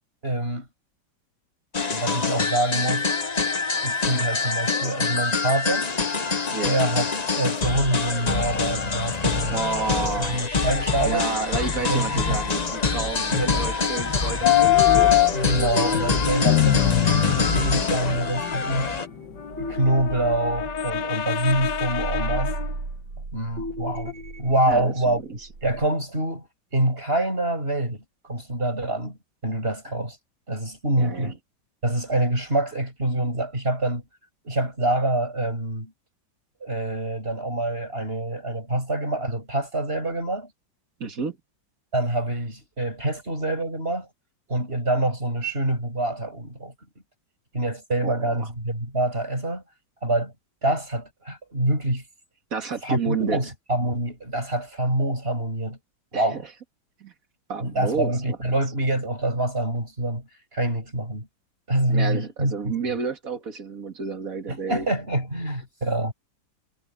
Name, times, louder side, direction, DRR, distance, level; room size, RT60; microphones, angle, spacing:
voice 1, 0.2-0.7 1.9-3.1 3.8-5.9 6.6-7.0 7.3-9.6 10.2-11.3 11.9-12.4 13.3-13.6 15.3-18.9 19.6-22.5 23.3-25.2 25.6-26.5 26.7-30.2 30.5-31.4 31.8-34.0 34.4-35.9 36.6-40.5 41.9-44.1 44.5-46.7 47.5-49.6 50.0-50.3 50.6-52.0 52.8-55.8 56.1-56.4 57.6-60.3 60.5-61.3 61.7-62.7 64.5-66.1, right 1 dB, 30° right, 7.7 m, -26 dB
sound 1, 1.7-19.1, left 4 dB, 30° left, 0.8 m, -25 dB
voice 2, 9.5-10.5 11.0-15.4 16.4-16.6 24.7-25.4 31.0-31.3 41.0-41.4 48.0-48.5 52.5-53.4 56.1-56.4 57.0-57.1 57.5-58.4 61.9-64.9, right 5 dB, 45° right, 2.5 m, -31 dB
sound 2, 14.4-22.7 24.1-24.2, left 12 dB, 65° left, 1.6 m, -24 dB
sound 3, 18.1-25.9, right 2 dB, 70° right, 4.2 m, -35 dB
omnidirectional pair, 2.1 m